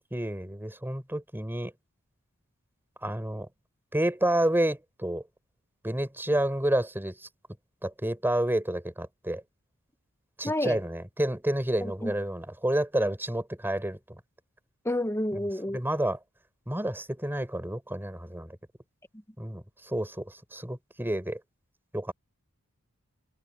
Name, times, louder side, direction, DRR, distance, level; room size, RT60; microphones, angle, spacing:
voice 1, 0.1-1.7 3.0-3.5 3.9-5.2 5.8-7.1 7.8-9.4 10.4-14.2 15.7-16.2 16.7-18.6 19.4-21.4 21.9-22.1, right 1 dB, 10° right, 4.8 m, -29 dB
voice 2, 10.4-10.8 11.8-12.1 14.8-15.8, left 1 dB, 10° left, 1.7 m, -29 dB
head